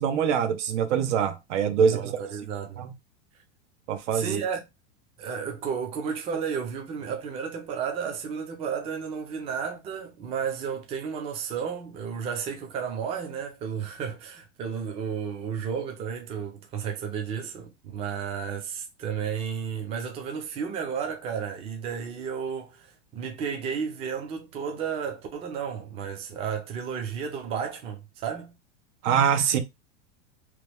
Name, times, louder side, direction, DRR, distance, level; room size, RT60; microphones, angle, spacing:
voice 1, 0.0-2.1 2.8-2.9 3.9-4.4 29.0-29.6, right 7 dB, 90° right, 0.8 m, -24 dB
voice 2, 1.7-2.9 4.1-4.7 5.2-28.5, right 7 dB, 20° right, 0.4 m, -33 dB
3.0 x 2.2 x 3.3 m
supercardioid pair, 160°, 35 cm